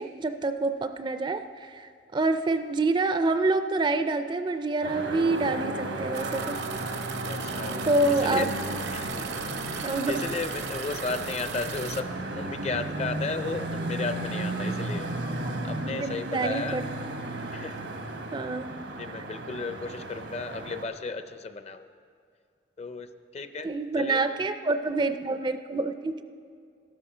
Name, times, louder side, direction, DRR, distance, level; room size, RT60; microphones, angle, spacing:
voice 1, 0.0-6.6 7.8-8.4 9.8-10.2 15.4-15.6 16.0-16.8 18.3-18.7 23.6-26.2, right 3 dB, 25° right, 10 dB, 0.4 m, -27 dB
sound 1, 4.8-20.9, right 2 dB, 85° right, 1.1 m, -34 dB
sound 2, 6.1-12.0, right 8 dB, 70° right, 0.7 m, -39 dB
voice 2, 7.3-8.5 8.9-16.8 17.5-18.0 19.0-21.9 22.8-24.2, left 4 dB, 35° left, 10 dB, 0.5 m, -35 dB
12.5 x 12.5 x 4.9 m, 2.2 s
head